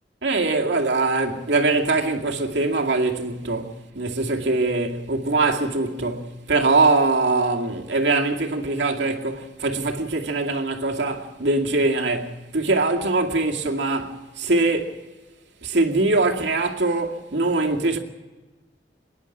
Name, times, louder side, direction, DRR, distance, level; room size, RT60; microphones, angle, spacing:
voice 1, 0.2-15.0 15.6-18.0, right 3 dB, 85° right, 2.3 m, -22 dB
25.0 x 11.0 x 9.9 m
head